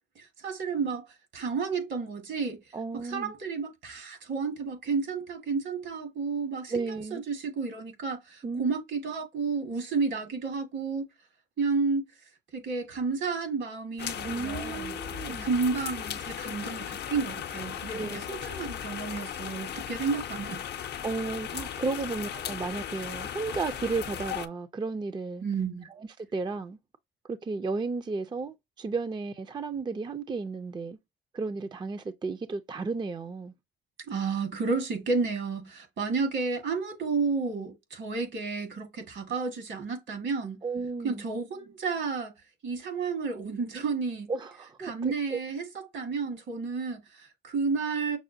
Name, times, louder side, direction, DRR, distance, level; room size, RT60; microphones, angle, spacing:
voice 1, 0.2-2.6 2.9-11.0 11.6-12.0 12.5-14.9 15.3-20.6 25.4-25.9 34.1-40.6 41.0-42.3 42.6-44.3 44.8-48.2, right 4 dB, 70° right, 1.6 m, -31 dB
voice 2, 2.7-3.3 6.7-7.2 8.4-8.6 14.2-15.5 17.9-18.3 21.0-25.4 25.9-26.8 27.3-31.0 31.3-33.5 40.6-41.2 44.3-45.4, right 4 dB, 25° right, 0.4 m, -33 dB
sound 1, 14.0-24.5, left 9 dB, 60° left, 0.5 m, -37 dB
6.0 x 2.1 x 2.6 m
cardioid pair, 90°, 20 cm